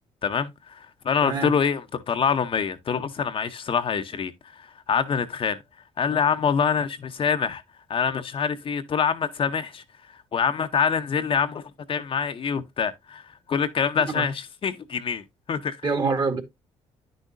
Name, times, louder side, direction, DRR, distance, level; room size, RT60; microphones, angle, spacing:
voice 1, 0.2-5.6 6.0-7.6 7.9-9.8 10.3-13.2 13.5-15.8, left 6 dB, 45° left, 0.8 m, -25 dB
voice 2, 15.8-16.4, right 4 dB, 35° right, 1.5 m, -25 dB
9.8 x 6.4 x 2.6 m
supercardioid pair, 80°, 13 cm